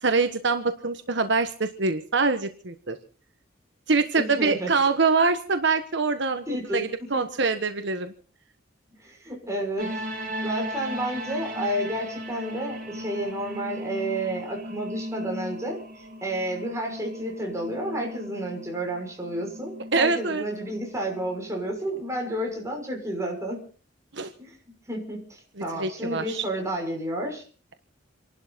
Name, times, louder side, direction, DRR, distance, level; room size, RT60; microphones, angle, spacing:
voice 1, 0.0-3.0 3.9-6.4 6.7-8.1 19.9-20.4 24.1-24.3 25.8-26.4, right 4 dB, 65° right, 8 dB, 1.3 m, -24 dB
voice 2, 4.1-4.7 6.5-7.2 9.0-23.6 24.4-24.5 24.9-27.4, right 1 dB, 15° right, 0 dB, 6.3 m, -31 dB
sound 1, 9.8-22.5, equal, 50° right, 3.5 m, -37 dB
28.5 x 12.0 x 4.2 m, 0.40 s
head